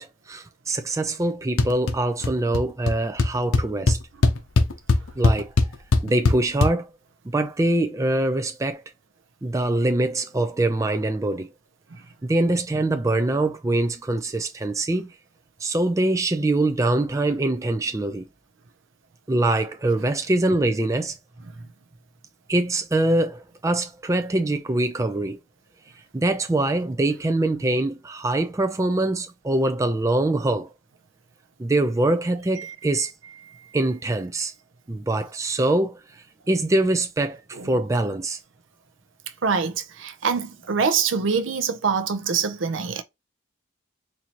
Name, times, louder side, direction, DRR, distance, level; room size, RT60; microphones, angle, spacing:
voice 1, 0.0-4.0 5.2-5.5 6.0-6.9 7.3-8.8 9.4-11.5 12.2-15.1 15.6-18.3 19.3-21.2 22.5-25.4 26.1-30.7 31.6-33.1 33.7-34.5 34.9-38.4, right 2 dB, 15° right, 0.4 m, -23 dB
sound 1, 1.6-2.0 2.2-2.6 2.9-3.0 3.2-6.7, left 3 dB, 85° left, 0.7 m, -19 dB
voice 2, 39.4-43.0, right 5 dB, 70° right, 0.6 m, -25 dB
4.3 x 2.7 x 2.9 m
head